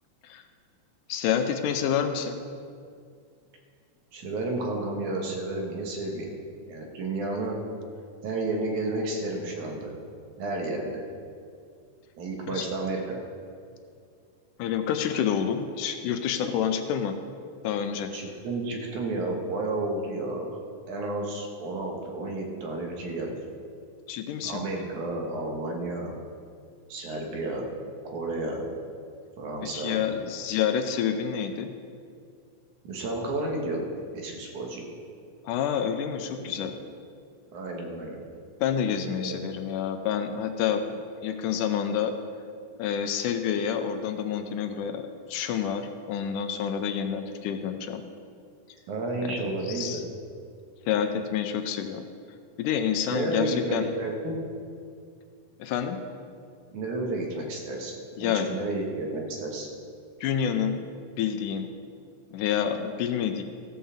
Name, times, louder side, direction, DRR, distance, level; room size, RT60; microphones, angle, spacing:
voice 1, 1.1-2.4 12.5-12.7 14.6-17.2 17.6-18.1 24.1-24.6 29.6-31.7 35.4-36.8 38.6-42.1 42.8-48.0 49.2-50.0 50.9-52.1 52.6-53.8 55.6-56.0 58.2-58.5 60.2-60.8 61.2-61.7 62.3-63.4, left 8 dB, 85° left, 7 dB, 2.2 m, -28 dB
voice 2, 4.1-6.4 6.7-7.6 8.2-10.0 10.4-11.0 12.2-13.2 18.1-20.6 20.9-23.4 24.4-26.1 26.9-27.7 28.0-28.7 29.4-30.0 32.8-34.9 36.3-36.7 37.5-38.2 39.1-39.4 48.9-50.0 53.1-54.4 56.7-57.9 58.2-59.7, right 2 dB, 70° right, 0 dB, 2.8 m, -31 dB
15.0 x 5.5 x 7.1 m, 2.3 s
omnidirectional pair, 3.6 m